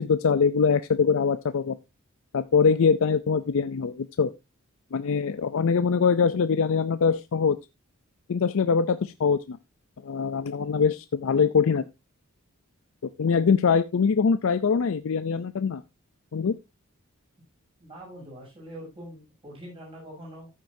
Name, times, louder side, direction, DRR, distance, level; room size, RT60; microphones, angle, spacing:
voice 1, 0.0-1.8 2.3-4.3 4.9-7.6 8.3-9.6 10.0-11.9 13.2-15.8 16.3-16.5, left 5 dB, 65° left, 12 dB, 0.5 m, -23 dB
voice 2, 17.8-20.5, equal, 25° right, -4 dB, 7.1 m, -43 dB
14.0 x 7.4 x 2.7 m, 0.23 s
head